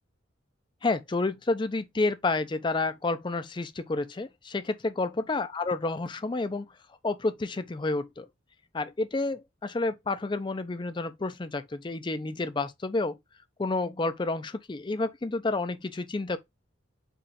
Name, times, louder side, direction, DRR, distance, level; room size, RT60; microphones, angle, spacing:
voice 1, 0.8-6.7 7.0-8.3 8.7-13.2 13.6-16.4, left 3 dB, 25° left, 0.4 m, -30 dB
5.2 x 2.4 x 4.1 m
head